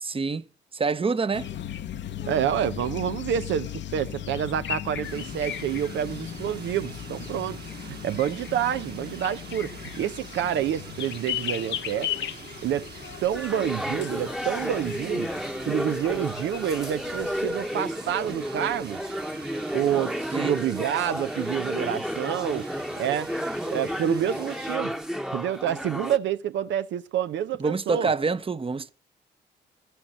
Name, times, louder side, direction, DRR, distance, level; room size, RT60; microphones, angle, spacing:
voice 1, 0.0-0.5 0.7-1.5 20.3-20.5 27.6-28.9, right 4 dB, 30° right, 0.8 m, -26 dB
sound 1, 1.3-17.4, left 10 dB, 70° left, 0.9 m, -37 dB
voice 2, 2.2-12.1 12.6-12.9 13.2-15.3 15.7-19.0 19.7-22.7 23.0-23.3 23.7-25.0 25.3-28.1, right 10 dB, 80° right, 0.6 m, -28 dB
sound 2, 5.0-24.8, right 5 dB, 55° right, 2.3 m, -45 dB
sound 3, 13.3-26.2, equal, 5° right, 1.0 m, -32 dB
13.5 x 10.0 x 5.3 m
supercardioid pair, 60°, 19 cm